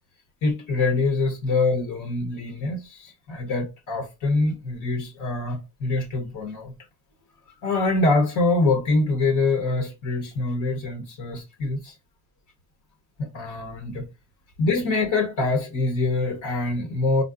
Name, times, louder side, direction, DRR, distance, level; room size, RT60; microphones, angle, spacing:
voice 1, 0.4-6.7 7.6-11.9 13.2-14.1 14.6-17.2, left 3 dB, 90° left, 0.8 m, -24 dB
3.8 x 2.0 x 2.3 m
cardioid pair, 90°, 30 cm